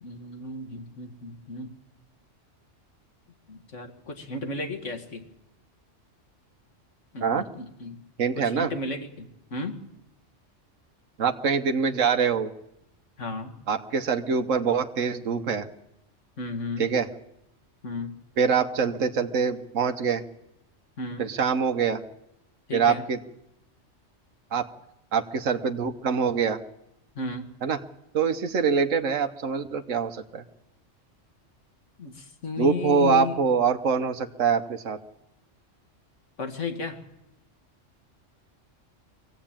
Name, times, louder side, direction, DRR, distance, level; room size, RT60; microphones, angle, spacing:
voice 1, 0.0-1.7 3.5-5.2 7.1-8.0 8.4-9.8 13.2-13.6 16.4-16.9 17.8-18.1 21.0-21.3 22.7-23.0 27.2-27.5 32.0-33.3 36.4-37.0, left 3 dB, 70° left, 6 dB, 2.3 m, -34 dB
voice 2, 8.2-8.7 11.2-12.5 13.7-15.7 16.8-17.1 18.4-20.2 21.2-22.0 22.7-23.2 24.5-24.7 25.1-26.6 27.6-27.8 28.1-30.4 32.6-35.0, right 6 dB, 90° right, 7 dB, 1.4 m, -24 dB
24.0 x 16.0 x 8.9 m, 0.84 s
omnidirectional pair, 1.3 m